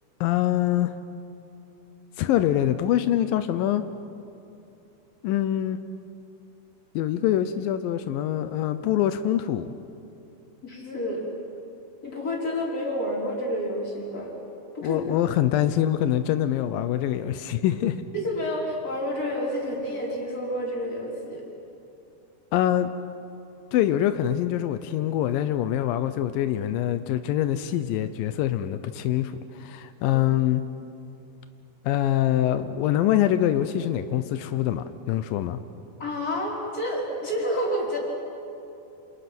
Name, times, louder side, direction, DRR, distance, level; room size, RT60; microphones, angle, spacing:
voice 1, 0.2-0.9 2.2-3.8 5.2-5.8 7.0-9.7 14.8-18.0 22.5-22.9 23.7-30.6 31.8-35.6, left 12 dB, 90° left, 11 dB, 2.0 m, -24 dB
voice 2, 10.6-11.3 12.0-14.3 14.7-15.0 18.1-21.5 30.1-30.2 36.0-38.0, equal, 20° left, -3 dB, 5.1 m, -29 dB
29.5 x 27.5 x 6.1 m, 2.8 s
omnidirectional pair, 5.0 m